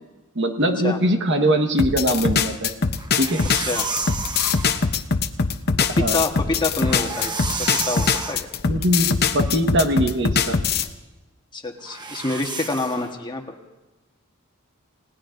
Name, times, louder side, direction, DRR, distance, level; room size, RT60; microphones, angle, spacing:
voice 1, 0.3-2.8 3.2-3.4 6.0-6.2 8.7-10.6, equal, 60° right, 5 dB, 1.4 m, -21 dB
sound 1, 1.8-10.9, left 5 dB, 50° left, 0.8 m, -22 dB
sound 2, 3.0-4.9 6.6-8.4 11.9-13.1, right 3 dB, 20° right, 1.0 m, -30 dB
voice 2, 3.6-3.9 5.8-7.4 7.9-8.5 11.5-13.5, left 2 dB, 20° left, 2 dB, 1.3 m, -27 dB
29.5 x 18.0 x 2.6 m, 1.1 s
head